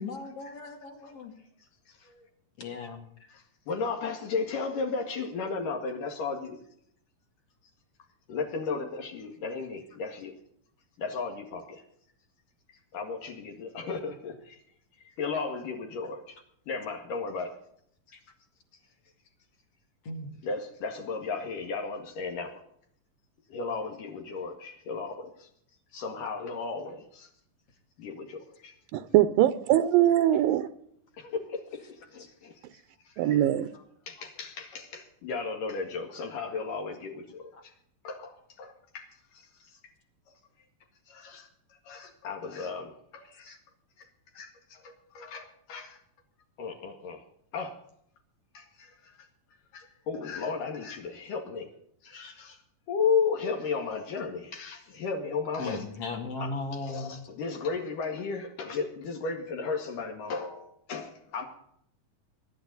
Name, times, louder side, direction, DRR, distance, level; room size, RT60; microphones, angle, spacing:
voice 1, 0.0-1.3 2.6-3.1 20.0-20.4 55.6-57.2, left 3 dB, 45° left, 3.2 m, -37 dB
voice 2, 3.3-6.6 8.3-10.3 11.0-11.8 12.9-14.6 15.2-16.4 16.7-17.6 20.4-22.6 23.5-25.5 25.9-27.3 28.0-28.7 31.2-32.5 33.1-33.2 34.1-37.7 38.0-39.1 39.3-39.5 41.1-41.5 41.8-43.6 44.0-44.1 44.3-46.0 46.6-47.2 47.5-47.8 48.5-49.1 49.7-51.7 52.0-52.6 52.9-55.8 56.4-56.5 56.8-61.5, left 4 dB, 70° left, 3.5 m, -34 dB
voice 3, 28.9-30.7 33.2-33.7, right 12 dB, 85° right, 2.5 m, -22 dB
24.5 x 11.5 x 4.0 m
omnidirectional pair, 4.0 m